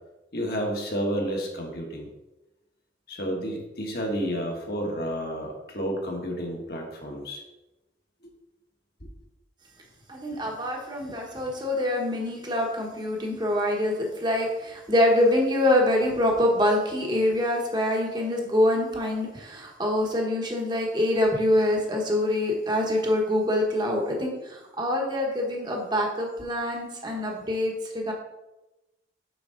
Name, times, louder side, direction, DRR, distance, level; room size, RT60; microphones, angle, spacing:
voice 1, 0.3-2.1 3.1-7.4 8.2-8.3, equal, 55° left, 0 dB, 1.5 m, -31 dB
voice 2, 10.1-28.1, left 1 dB, 25° right, 0 dB, 1.1 m, -25 dB
7.0 x 6.1 x 3.8 m, 0.99 s
head